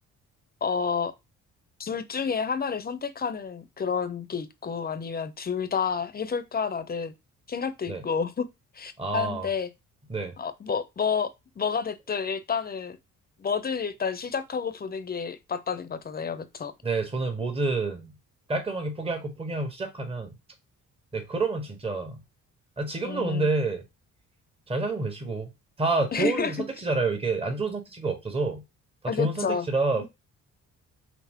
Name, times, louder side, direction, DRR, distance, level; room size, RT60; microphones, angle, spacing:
voice 1, 0.6-1.1 1.8-7.1 7.5-8.5 8.8-9.7 10.4-13.0 13.4-16.7 23.0-23.5 26.1-26.5 29.1-29.7 30.0-30.1, left 6 dB, 30° left, 0.6 m, -30 dB
voice 2, 9.0-9.5 10.1-10.4 16.8-18.1 18.5-20.3 21.1-22.2 22.8-23.8 24.7-25.5 25.8-28.6 29.0-30.1, right 3 dB, 20° right, 1.1 m, -28 dB
5.6 x 2.0 x 3.5 m
cardioid pair, 90°, 30 cm